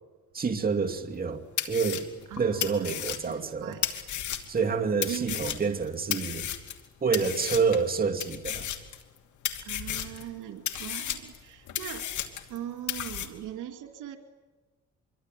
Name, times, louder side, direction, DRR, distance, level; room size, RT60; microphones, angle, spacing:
voice 1, 0.3-2.0 2.4-3.7 4.5-6.5 7.0-8.7, right 5 dB, 30° right, 2.6 m, -28 dB
sound 1, 1.1-1.2 1.6-4.7 5.0-6.9 7.1-7.9 8.2-9.2 9.4-10.3 10.7-12.6 12.9-13.3, left 10 dB, 75° left, 2.8 m, -33 dB
voice 2, 2.3-3.9 5.1-5.5 9.6-12.1 12.5-14.2, right 11 dB, 90° right, 2.6 m, -40 dB
26.0 x 24.0 x 9.3 m
cardioid pair, 90°, 30 cm